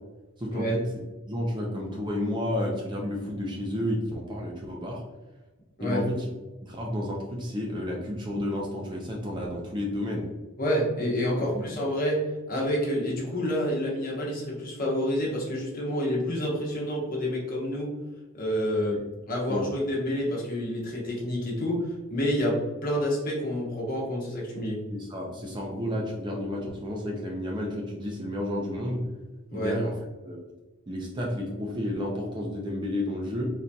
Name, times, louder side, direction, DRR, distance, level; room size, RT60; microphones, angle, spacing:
voice 1, 0.4-0.8 1.3-5.0 5.8-6.3 6.6-10.3 11.4-11.6 18.9-19.0 19.5-19.7 24.9-29.0 29.5-29.9 30.3-30.4 30.9-33.5, left 1 dB, 20° right, -1 dB, 0.4 m, -31 dB
voice 2, 10.6-12.2 12.5-17.9 18.3-19.0 19.3-22.6 22.8-24.8 29.5-29.8, equal, 40° left, -4 dB, 1.0 m, -28 dB
3.8 x 2.7 x 2.2 m, 1.2 s
head